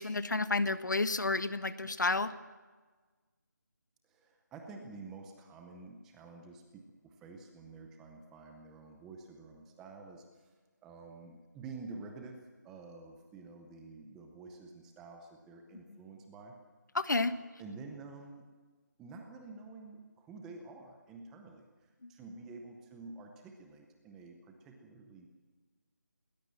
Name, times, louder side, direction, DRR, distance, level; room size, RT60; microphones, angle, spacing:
voice 1, 0.0-2.3 16.9-17.3 22.0-22.1, left 3 dB, 70° left, 12 dB, 1.4 m, -31 dB
voice 2, 4.0-10.5 10.8-16.6 17.6-18.5 19.0-25.3, right 3 dB, 5° right, 4 dB, 0.6 m, -49 dB
20.5 x 19.0 x 7.6 m, 1.4 s
figure-of-eight pair, 170°, 10 cm